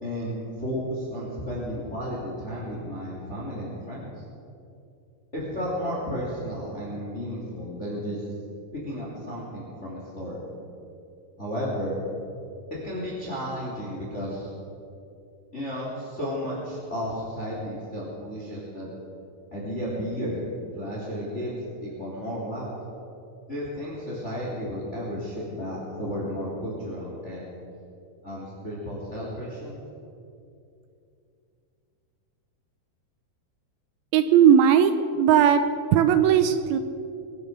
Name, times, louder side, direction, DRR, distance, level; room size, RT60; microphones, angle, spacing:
voice 1, 0.0-4.1 5.3-8.2 8.7-10.4 11.4-12.0 12.7-14.5 15.5-18.9 19.5-20.4 20.7-21.5 21.8-22.7 23.5-27.5 28.2-29.8, equal, 20° left, -5 dB, 2.9 m, -33 dB
voice 2, 34.1-35.6 35.9-36.8, right 8 dB, 80° right, 9 dB, 2.3 m, -18 dB
22.5 x 9.8 x 6.5 m, 2.6 s
omnidirectional pair, 4.7 m